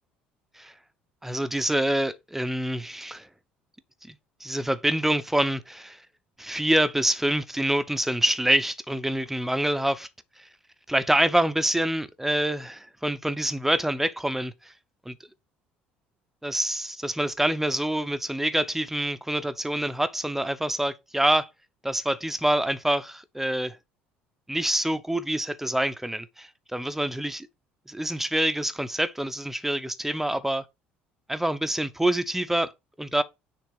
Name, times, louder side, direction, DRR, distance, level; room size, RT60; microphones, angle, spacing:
voice 1, 1.2-3.3 4.1-4.2 4.4-6.0 6.4-10.1 10.4-10.5 10.9-14.7 15.1-15.2 16.4-21.5 21.8-23.8 24.5-27.5 27.9-30.6 31.3-32.7 33.0-33.2, right 1 dB, 5° right, 0.7 m, -26 dB
6.5 x 3.3 x 4.7 m
hypercardioid pair, 60°, 5 cm